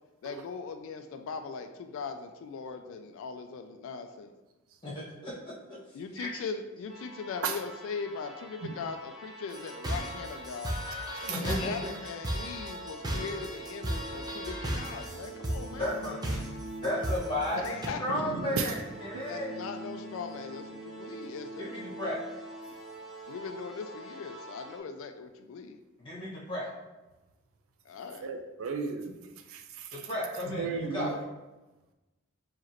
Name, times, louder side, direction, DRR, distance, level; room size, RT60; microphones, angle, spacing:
voice 1, 0.2-4.3 5.9-10.8 11.4-16.0 17.6-18.1 19.2-21.7 22.7-22.8 23.3-25.8 27.9-28.3, left 5 dB, 65° left, 7 dB, 0.3 m, -40 dB
voice 2, 4.8-5.8 6.1-6.3 11.3-11.7 15.7-16.2 16.8-19.5 21.6-22.2 26.0-26.7 29.9-31.3, left 1 dB, 25° left, -7 dB, 1.4 m, -34 dB
sound 1, 6.9-24.8, right 1 dB, ahead, 1.1 m, -45 dB
sound 2, 9.5-17.9, right 1 dB, 20° right, 0.6 m, -35 dB
voice 3, 18.1-18.7 28.2-30.0 30.3-31.2, right 5 dB, 70° right, 5 dB, 0.4 m, -35 dB
4.8 x 2.9 x 2.9 m, 1.1 s
head